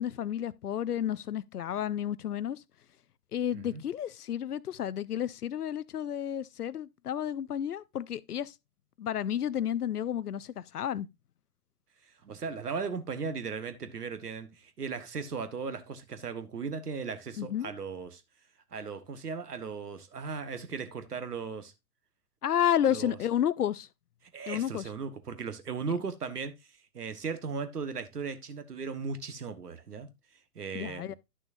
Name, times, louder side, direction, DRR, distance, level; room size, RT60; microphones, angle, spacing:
voice 1, 0.0-2.6 3.3-8.5 9.0-11.1 17.4-17.7 22.4-23.9 24.5-24.8 30.7-31.1, left 10 dB, 70° left, 0.7 m, -31 dB
voice 2, 12.2-18.2 18.7-21.7 22.9-23.2 24.3-26.5 26.9-30.1 30.5-31.1, right 5 dB, 75° right, 1.5 m, -37 dB
11.5 x 6.3 x 2.7 m
figure-of-eight pair, 115°, 47 cm